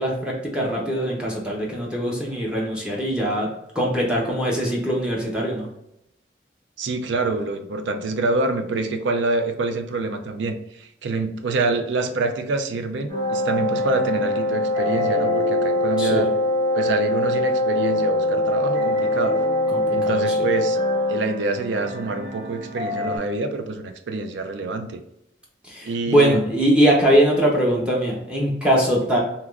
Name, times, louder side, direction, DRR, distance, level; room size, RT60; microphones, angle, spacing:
voice 1, 0.0-3.5 3.7-5.7 16.0-16.3 19.7-20.5 25.7-29.2, equal, 5° right, -4 dB, 0.6 m, -21 dB
voice 2, 6.8-16.3 16.7-19.4 19.9-20.8 21.1-25.0 25.8-26.4, right 3 dB, 80° right, 7 dB, 0.4 m, -26 dB
Wind instrument woodwind instrument, 13.1-21.3, left 1 dB, 80° left, 0.4 m, -22 dB
sound 1, 13.1-23.2, left 2 dB, 45° right, 0.8 m, -33 dB
3.5 x 2.9 x 2.3 m, 0.82 s
head